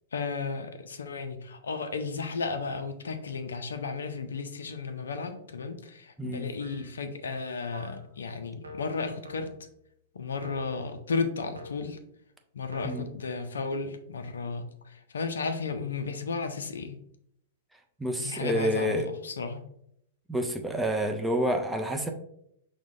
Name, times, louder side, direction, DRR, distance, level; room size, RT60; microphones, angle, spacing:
voice 1, 0.1-9.5 10.2-12.0 12.5-14.7 15.1-17.0 18.2-19.0 19.2-19.6, left 4 dB, 70° left, 8 dB, 0.4 m, -34 dB
voice 2, 6.2-6.5 12.8-13.1 18.0-19.1 20.3-22.1, equal, 5° right, 3 dB, 0.4 m, -28 dB
sound 1, 6.6-7.1 7.7-8.1 8.6-9.8 10.4-10.9 11.6-12.0 12.7-13.0, left 2 dB, 80° right, 0.4 m, -45 dB
5.9 x 2.1 x 2.4 m, 0.73 s
figure-of-eight pair, 100°, 0 cm